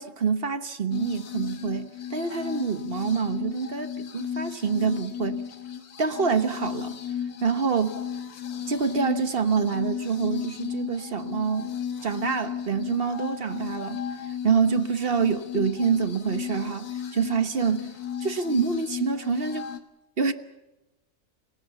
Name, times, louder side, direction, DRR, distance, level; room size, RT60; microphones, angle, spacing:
voice 1, 0.0-5.4 6.0-7.0 7.4-8.0 8.7-11.7 12.0-14.0 14.4-17.9 18.2-19.7 20.2-20.3, right 6 dB, 40° right, 1.2 m, -26 dB
sound 1, 0.9-19.8, left 8 dB, 90° left, 1.9 m, -34 dB
28.5 x 17.5 x 7.0 m
omnidirectional pair, 1.6 m